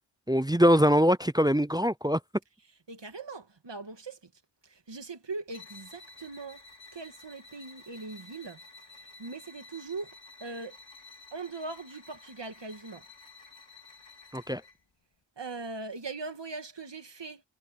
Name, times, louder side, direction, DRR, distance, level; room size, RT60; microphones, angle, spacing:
voice 1, 0.3-2.2 14.3-14.6, equal, 10° right, 0.4 m, -23 dB
voice 2, 2.9-4.3 4.6-6.6 6.9-8.6 9.2-10.1 10.4-10.8 11.3-13.0 15.4-17.4, right 3 dB, 65° right, 2.3 m, -40 dB
sound 1, 5.5-14.8, left 3 dB, 75° left, 4.0 m, -52 dB
wide cardioid pair, 55°, 46 cm